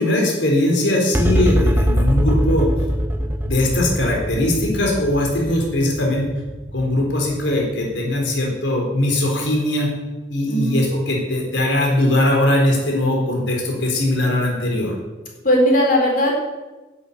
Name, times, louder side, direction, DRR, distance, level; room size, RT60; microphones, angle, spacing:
voice 1, 0.0-2.7 3.4-6.3 6.7-9.9 10.3-14.9, left 1 dB, 70° left, -1 dB, 3.9 m, -20 dB
sound 1, 1.1-7.8, equal, 10° right, 0.7 m, -22 dB
voice 2, 10.5-10.8 15.4-16.3, equal, 45° left, 0 dB, 3.9 m, -17 dB
11.5 x 8.5 x 8.4 m, 1.1 s
head